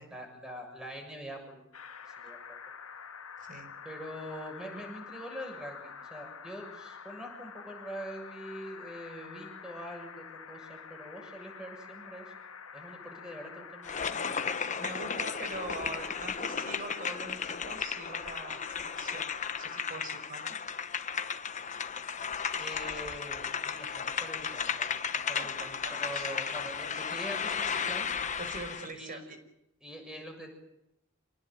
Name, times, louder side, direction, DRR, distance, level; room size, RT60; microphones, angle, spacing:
voice 1, 0.0-1.6 2.1-2.4 3.8-12.2 12.7-13.9 22.6-28.1 28.9-29.2 29.8-30.5, equal, 5° right, 3 dB, 7.2 m, -44 dB
sound 1, 1.7-19.8, left 6 dB, 80° left, 1.9 m, -48 dB
voice 2, 3.4-3.7 14.8-19.3 19.6-20.6 25.4-26.6 28.4-29.4, right 2 dB, 40° right, 7 dB, 5.3 m, -43 dB
sound 2, 13.8-28.9, left 6 dB, 35° left, 1.2 m, -34 dB
28.0 x 18.5 x 9.2 m, 0.84 s
head